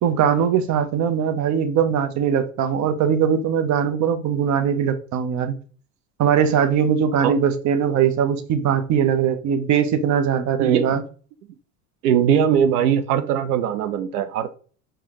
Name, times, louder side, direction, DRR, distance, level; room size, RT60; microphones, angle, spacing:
voice 1, 0.0-5.5 6.2-11.0, right 8 dB, 40° right, 0.7 m, -20 dB
voice 2, 10.6-10.9 12.0-14.6, right 8 dB, 85° right, 0.5 m, -20 dB
4.8 x 2.3 x 2.9 m
hypercardioid pair, 85°, 44 cm